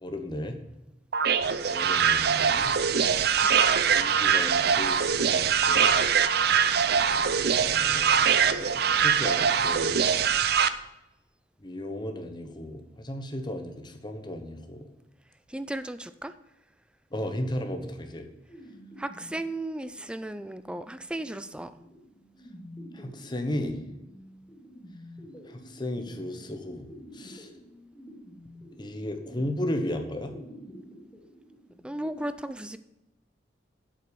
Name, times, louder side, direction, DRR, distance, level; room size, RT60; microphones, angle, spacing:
voice 1, 0.0-0.6 1.7-2.8 3.8-6.0 6.5-7.0 7.6-10.0 11.6-14.9 17.1-18.3 22.9-23.8 25.5-26.9 27.1-27.5 28.8-30.3, left 1 dB, 25° left, 6 dB, 1.1 m, -35 dB
sound 1, 1.1-10.7, right 7 dB, 60° right, 0.6 m, -23 dB
voice 2, 3.1-3.4 15.5-16.3 19.0-21.7 31.8-32.8, right 1 dB, 5° right, 12 dB, 0.4 m, -35 dB
sound 2, 18.5-32.2, equal, 10° left, 3.5 m, -49 dB
8.2 x 7.8 x 6.9 m, 0.93 s
head